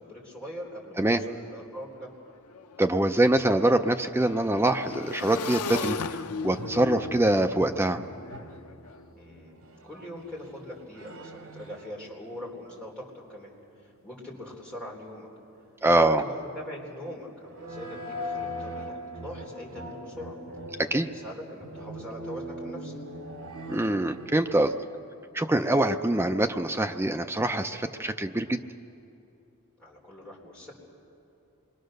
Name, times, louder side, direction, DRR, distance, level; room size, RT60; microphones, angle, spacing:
voice 1, 0.0-2.1 9.1-15.3 15.8-20.4 20.8-22.9 29.8-30.7, left 1 dB, 5° left, -4 dB, 4.0 m, -42 dB
Motorcycle / Engine, 1.5-1.6 1.9-9.0, left 5 dB, 85° left, 0.6 m, -38 dB
voice 2, 2.8-8.0 15.8-16.2 20.8-21.1 23.7-24.7 25.3-28.6, right 1 dB, 10° right, 7 dB, 0.5 m, -24 dB
sound 1, 5.6-12.4 12.7-12.8 17.4-24.8, equal, 75° right, 2.5 m, -41 dB
27.0 x 22.5 x 6.6 m, 2.7 s
head